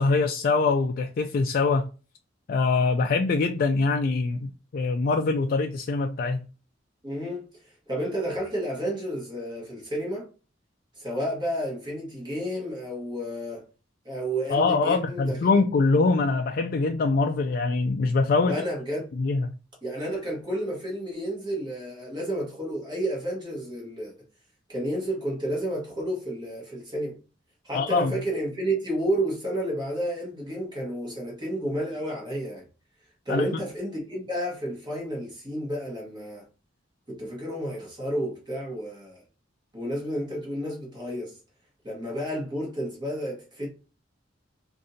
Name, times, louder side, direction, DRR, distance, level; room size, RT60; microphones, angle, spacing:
voice 1, 0.0-1.9 2.5-6.4 14.5-18.6 19.2-19.5 27.7-28.1 33.3-33.5, left 3 dB, 50° left, 0.3 m, -23 dB
voice 2, 7.0-10.3 11.0-13.7 14.0-15.6 18.5-19.1 19.8-24.1 24.7-27.2 27.6-32.6 33.2-36.5 37.1-39.2 39.7-41.4 41.8-43.7, right 1 dB, 25° right, 1.5 m, -31 dB
4.9 x 2.6 x 2.6 m
head